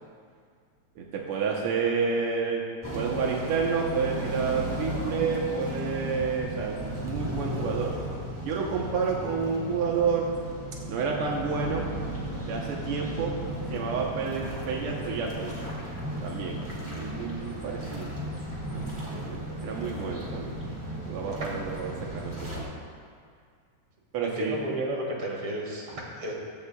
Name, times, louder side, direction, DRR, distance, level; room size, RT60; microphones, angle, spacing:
voice 1, 1.0-2.6 2.9-7.9 8.4-10.3 10.9-11.9 12.5-13.3 13.7-15.5 16.2-18.1 19.1-20.6 21.1-22.7 24.1-24.6, right 5 dB, 70° right, -1 dB, 1.3 m, -30 dB
sound 1, 2.8-22.6, equal, 10° right, 1.5 m, -35 dB
voice 2, 24.2-26.3, right 1 dB, 45° right, -2 dB, 2.6 m, -32 dB
15.5 x 14.5 x 2.3 m, 2.1 s
omnidirectional pair, 3.9 m